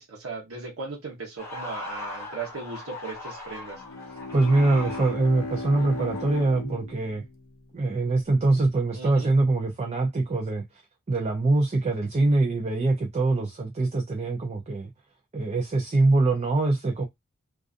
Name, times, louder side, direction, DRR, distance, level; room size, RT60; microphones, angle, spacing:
voice 1, 0.0-3.8 8.9-9.3, right 4 dB, 90° right, 0.9 m, -37 dB
sound 1, 1.4-6.4, left 2 dB, 10° left, 1.0 m, -40 dB
Bowed string instrument, 3.6-8.3, left 3 dB, 75° left, 0.6 m, -37 dB
voice 2, 4.3-7.2 7.7-10.6 11.1-14.9 15.3-17.1, right 2 dB, 30° right, 0.4 m, -23 dB
2.4 x 2.3 x 2.4 m
head